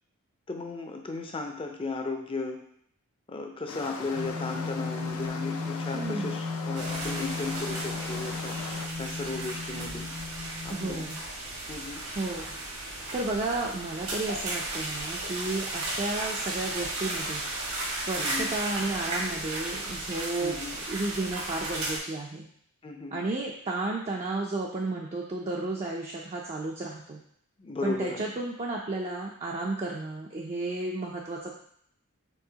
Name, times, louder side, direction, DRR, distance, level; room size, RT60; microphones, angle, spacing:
voice 1, 0.5-2.6 3.3-8.6 9.0-10.1 10.6-11.1 11.7-12.0 18.2-18.5 20.4-20.8 22.8-23.2 27.6-28.2, left 3 dB, 25° left, 3 dB, 0.5 m, -35 dB
sound 1, 3.7-8.9, left 4 dB, 85° left, 0.5 m, -40 dB
sound 2, 4.1-11.2, left 3 dB, 60° right, 0.7 m, -36 dB
voice 2, 5.9-6.3 10.7-11.2 12.2-12.4 13.1-17.4 18.0-22.4 23.1-27.2 27.8-31.5, right 2 dB, 30° right, -2 dB, 0.4 m, -32 dB
sound 3, 6.7-22.0, right 2 dB, 75° right, 1.3 m, -35 dB
4.6 x 3.6 x 2.8 m, 0.66 s
head